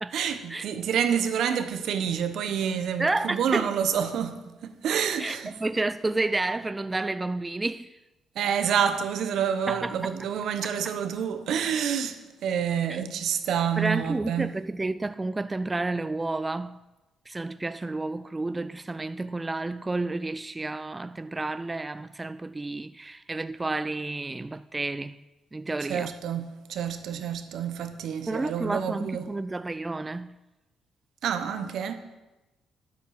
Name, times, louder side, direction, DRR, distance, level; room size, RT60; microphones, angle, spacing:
voice 1, 0.1-5.5 8.3-14.5 25.9-29.3 31.2-31.9, right 8 dB, 75° right, 1.0 m, -28 dB
voice 2, 3.0-3.7 5.2-8.0 9.7-10.1 10.6-10.7 12.9-13.0 13.8-16.8 17.3-25.2 25.5-26.1 28.3-30.4, right 2 dB, 20° right, 0.3 m, -30 dB
9.5 x 8.1 x 6.5 m
cardioid pair, 90°, 0 cm